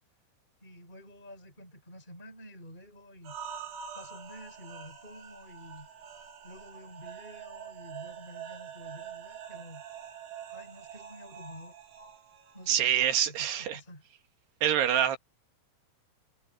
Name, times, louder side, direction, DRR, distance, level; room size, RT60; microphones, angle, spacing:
voice 1, 0.6-3.4 3.9-5.9 6.4-9.8 10.4-11.7 12.5-14.0, equal, 10° left, 7.3 m, -49 dB
sound 1, 3.2-13.2, right 8 dB, 85° right, 5.7 m, -45 dB
voice 2, 12.7-13.8 14.6-15.2, right 10 dB, 60° right, 3.6 m, -26 dB
omnidirectional pair, 5.7 m